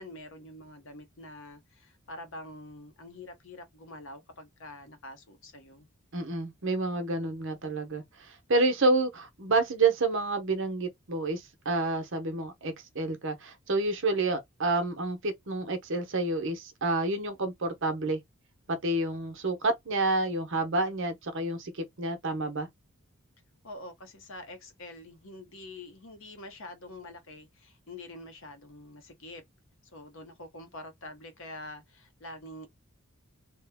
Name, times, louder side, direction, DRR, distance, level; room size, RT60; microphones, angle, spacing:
voice 1, 0.0-5.9 23.6-29.4 29.9-32.7, left 1 dB, 60° left, 0.8 m, -46 dB
voice 2, 6.1-18.2 18.7-22.7, right 2 dB, 55° right, 0.8 m, -29 dB
3.0 x 2.2 x 3.4 m
head